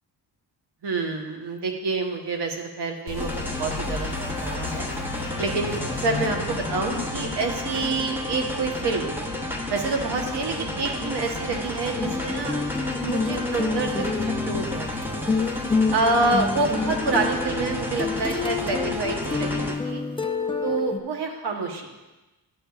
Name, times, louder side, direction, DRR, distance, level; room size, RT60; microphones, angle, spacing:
voice 1, 0.8-4.9 5.4-9.1 9.7-12.6 13.0-15.2 15.9-20.0 20.6-21.9, right 3 dB, 70° right, 3 dB, 1.1 m, -27 dB
sound 1, 3.1-9.6, left 6 dB, 85° left, 0.7 m, -36 dB
sound 2, 3.2-19.8, left 1 dB, 5° right, 0.9 m, -32 dB
sound 3, 12.0-21.0, left 4 dB, 15° left, 0.5 m, -28 dB
9.9 x 8.0 x 2.4 m, 1.1 s
cardioid pair, 95°, 42 cm